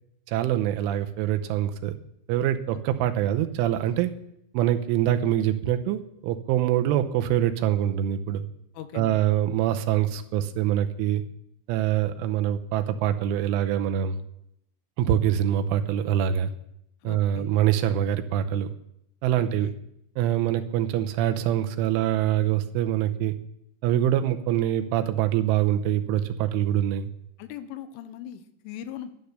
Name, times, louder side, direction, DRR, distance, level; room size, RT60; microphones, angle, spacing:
voice 1, 0.3-1.9 2.3-4.1 4.5-8.4 8.9-11.2 11.7-14.2 15.0-16.5 17.0-18.7 19.2-19.7 20.2-23.4 23.8-27.1, right 11 dB, 85° right, 8 dB, 3.2 m, -24 dB
voice 2, 8.7-9.2 17.0-17.5 19.3-19.7 27.4-29.1, left 11 dB, 85° left, 10 dB, 3.4 m, -39 dB
12.0 x 11.5 x 6.7 m, 0.77 s
omnidirectional pair, 5.6 m